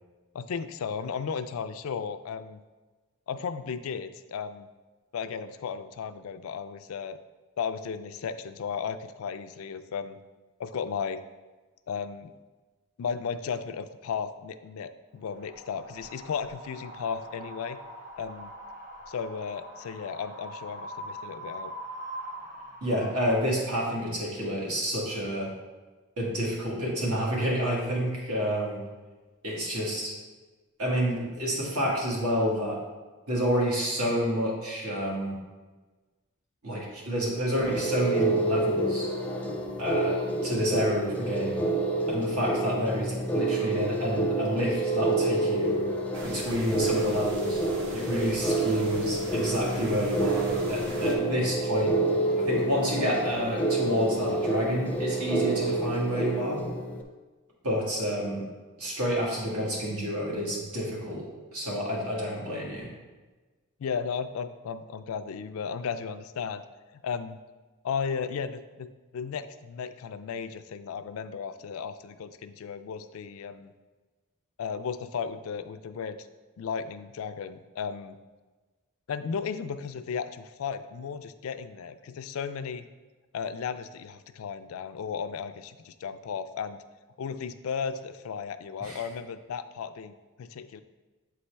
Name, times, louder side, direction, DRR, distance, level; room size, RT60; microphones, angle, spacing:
voice 1, 0.3-2.6 3.3-4.7 5.1-7.2 7.6-10.2 10.6-11.2 11.9-12.3 13.0-17.8 18.2-18.5 19.1-21.7 63.8-66.6 67.0-67.4 67.8-73.7 74.6-76.3 76.6-78.2 79.1-82.9 83.3-86.8 87.2-90.8, left 6 dB, 70° left, 11 dB, 0.3 m, -35 dB
Wind, 15.2-23.4, right 1 dB, 40° right, 1.3 m, -43 dB
voice 2, 22.8-25.5 26.2-28.8 29.4-30.1 30.8-32.8 33.3-35.4 36.6-39.1 39.8-41.6 42.1-45.8 46.2-47.6 47.9-52.0 52.4-56.7 57.6-58.4 58.8-61.2 61.5-62.9 88.8-89.0, equal, 85° right, -3 dB, 1.9 m, -29 dB
sound 1, 37.6-57.0, right 2 dB, 5° left, 0.5 m, -28 dB
sound 2, 46.1-51.2, right 1 dB, 60° right, 1.0 m, -42 dB
8.0 x 4.2 x 3.3 m, 1.3 s
head